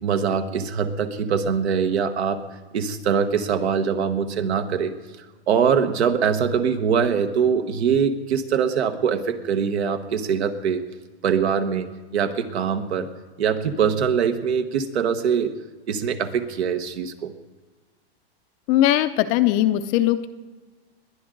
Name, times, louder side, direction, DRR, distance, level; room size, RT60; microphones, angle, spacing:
voice 1, 0.0-2.4 2.7-4.9 5.5-10.8 11.2-11.9 12.1-13.1 13.4-15.5 15.9-17.3, right 7 dB, 80° right, 8 dB, 1.5 m, -23 dB
voice 2, 18.7-20.3, left 13 dB, 25° left, 10 dB, 0.4 m, -19 dB
21.0 x 10.5 x 3.9 m, 1.3 s
hypercardioid pair, 145°, 32 cm